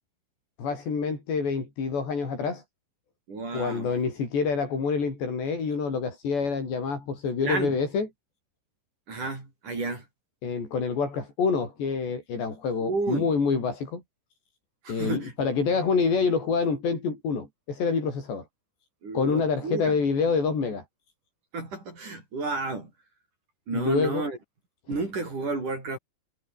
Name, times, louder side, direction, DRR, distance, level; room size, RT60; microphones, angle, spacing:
voice 1, 0.6-2.6 3.5-8.1 10.4-14.0 14.9-18.4 19.1-20.8 23.7-24.3, left 5 dB, 85° left, 9.1 m, -27 dB
voice 2, 3.3-3.9 7.4-7.8 9.1-10.1 12.8-13.3 14.8-15.3 19.0-20.0 21.5-22.9 23.7-24.4 24.9-26.0, right 3 dB, 45° right, 8.7 m, -31 dB
omnidirectional pair, 4.9 m